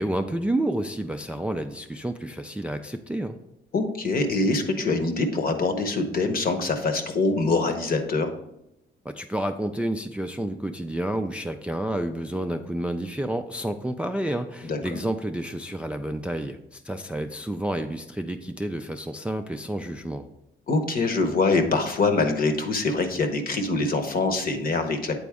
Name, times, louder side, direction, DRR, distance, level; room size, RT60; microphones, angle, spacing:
voice 1, 0.0-3.4 9.1-20.2, right 1 dB, 5° right, 6 dB, 0.3 m, -30 dB
voice 2, 3.7-8.3 14.6-15.0 20.7-25.2, left 3 dB, 45° left, 7 dB, 0.9 m, -24 dB
8.5 x 4.0 x 3.5 m, 0.86 s
cardioid pair, 90°, 20 cm